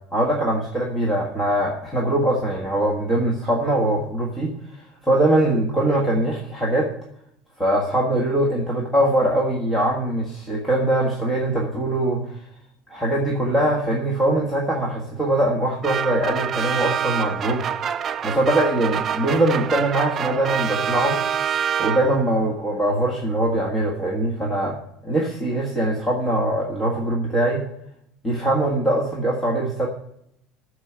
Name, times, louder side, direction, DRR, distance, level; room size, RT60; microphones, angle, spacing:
voice 1, 0.1-4.5 5.0-6.9 7.6-12.4 12.9-17.7 18.2-21.2 21.8-24.8 25.0-27.6 28.2-29.9, right 1 dB, 10° left, -3 dB, 1.6 m, -22 dB
sound 1, 15.8-22.4, right 8 dB, 25° right, 0.4 m, -26 dB
14.0 x 4.9 x 8.8 m, 0.75 s
cardioid pair, 165°, 0 cm